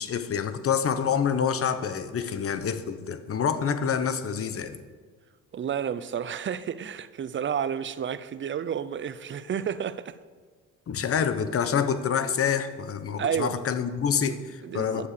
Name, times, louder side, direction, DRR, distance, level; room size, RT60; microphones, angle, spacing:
voice 1, 0.0-4.8 10.9-15.1, left 7 dB, 50° left, 1.0 m, -27 dB
voice 2, 5.5-10.2 13.2-13.6 14.3-15.1, right 8 dB, 40° right, 0.6 m, -31 dB
11.5 x 7.3 x 6.6 m
cardioid pair, 90°, 30 cm